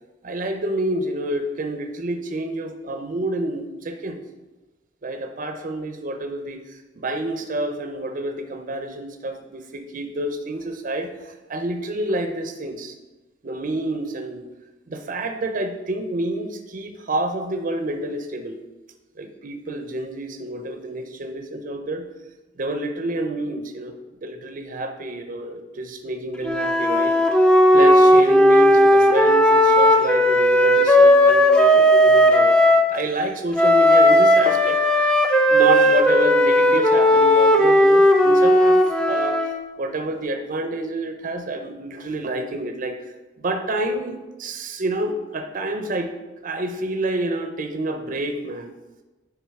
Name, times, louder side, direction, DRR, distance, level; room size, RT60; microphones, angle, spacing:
voice 1, 0.2-4.2 5.0-12.9 13.4-14.5 14.9-18.6 19.2-22.1 22.6-27.1 27.7-32.6 32.9-34.8 35.4-39.4 39.8-43.0 43.4-48.7, right 1 dB, 45° right, 5 dB, 0.6 m, -28 dB
Wind instrument woodwind instrument, 26.4-32.8 33.5-39.6, equal, 5° left, 0.6 m, -15 dB
9.5 x 3.5 x 4.7 m, 1.1 s
head